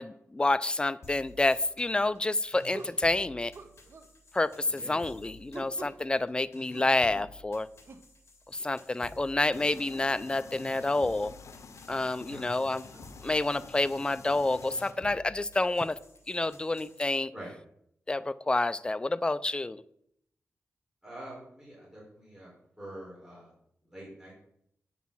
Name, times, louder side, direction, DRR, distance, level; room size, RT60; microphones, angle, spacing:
voice 1, 0.0-3.5 4.3-7.7 8.5-11.3 11.9-12.8 13.2-16.0 16.3-17.3 18.1-19.8, left 2 dB, 20° left, 0.4 m, -28 dB
sound 1, 1.0-17.0, left 2 dB, 60° left, 2.1 m, -54 dB
sound 2, 1.6-1.8 2.7-3.0 3.5-4.1 5.5-6.0 6.7-7.3 7.9-8.1 9.7-9.8 10.5-10.7 11.2-11.3 12.0-12.2 12.9-13.0, right 4 dB, 55° right, 1.0 m, -47 dB
voice 2, 4.6-5.0 12.3-12.7 17.3-17.5 21.0-22.5 22.8-23.5 23.8-24.3, right 1 dB, 10° right, 4.7 m, -45 dB
sound 3, 9.5-14.9, left 4 dB, 75° left, 0.9 m, -49 dB
8.4 x 6.1 x 7.2 m
wide cardioid pair, 100°, 5 cm